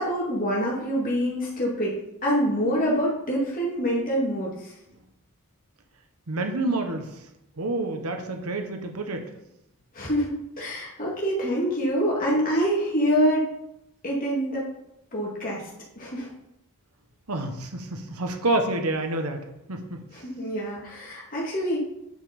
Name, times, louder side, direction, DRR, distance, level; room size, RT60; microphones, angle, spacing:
voice 1, 0.0-1.9 2.2-4.5 10.0-13.4 14.0-14.6 15.1-15.6 16.0-16.3 20.1-21.8, equal, 40° left, -4 dB, 2.1 m, -25 dB
voice 2, 6.3-7.2 7.6-9.3 17.3-19.4 19.7-20.0, right 2 dB, 80° right, 4 dB, 1.1 m, -28 dB
9.2 x 5.4 x 5.2 m, 0.84 s
head